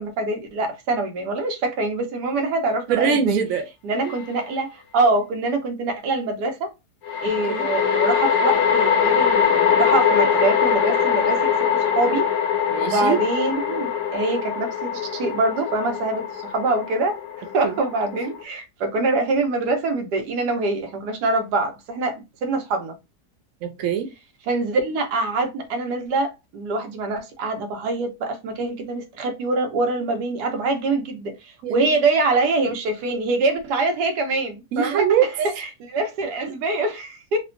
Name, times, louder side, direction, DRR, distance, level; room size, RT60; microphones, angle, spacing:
voice 1, 0.0-3.4 3.8-6.7 7.2-12.3 12.8-17.2 17.5-23.0 24.5-35.0 35.6-37.4, right 2 dB, 90° right, 1.3 m, -24 dB
voice 2, 2.9-3.7 4.0-4.2 7.4-7.7 12.7-13.2 17.6-17.8 23.6-24.1 31.6-32.0 34.7-35.5, right 8 dB, 65° right, 1.0 m, -23 dB
sound 1, 4.1-4.2 7.0-18.4, left 7 dB, 85° left, 1.3 m, -22 dB
3.3 x 2.2 x 2.5 m
omnidirectional pair, 1.7 m